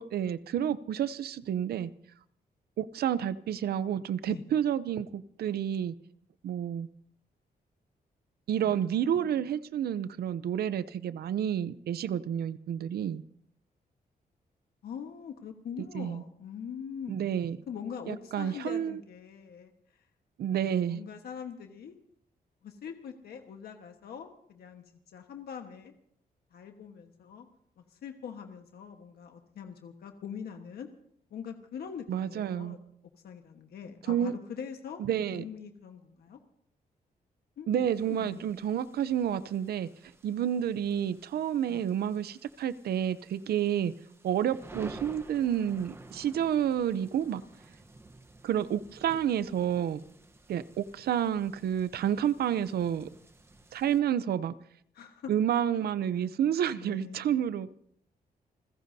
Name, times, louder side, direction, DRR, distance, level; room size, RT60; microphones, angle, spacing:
voice 1, 0.0-1.9 2.8-5.9 6.4-6.9 8.5-13.2 15.9-16.2 17.1-17.6 18.1-19.0 20.4-21.0 32.1-32.8 34.1-34.3 35.0-35.4 37.7-39.9 40.2-43.9 44.2-47.4 48.4-50.0 50.5-53.1 53.7-54.5 55.3-57.8, right 9 dB, 85° right, 0.6 m, -30 dB
voice 2, 8.5-9.3 14.8-17.3 17.7-19.7 20.5-21.9 22.6-25.9 26.5-27.5 27.8-30.9 31.3-32.8 33.2-36.4 37.6-38.5 41.7-41.9 54.9-55.3 56.2-56.3 56.7-57.3, left 7 dB, 90° left, 1.4 m, -43 dB
sound 1, 37.9-54.0, right 2 dB, 15° right, 1.0 m, -52 dB
29.5 x 15.5 x 2.8 m
wide cardioid pair, 175°, 16 cm